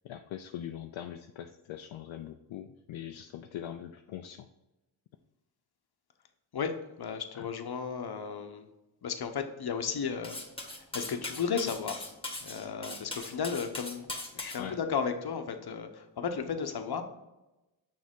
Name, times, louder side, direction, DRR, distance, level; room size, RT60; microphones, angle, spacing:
voice 1, 0.0-4.5 7.3-7.5 14.6-14.8, left 10 dB, 70° left, 6 dB, 0.6 m, -42 dB
voice 2, 6.5-8.7 9.0-10.4 10.8-12.1 12.4-14.1 14.3-17.0, left 6 dB, 50° left, 7 dB, 1.0 m, -34 dB
Cutlery silverware, 10.2-14.6, left 2 dB, 10° left, 1.6 m, -40 dB
6.3 x 4.2 x 3.7 m, 1.0 s
supercardioid pair, 45°, 49 cm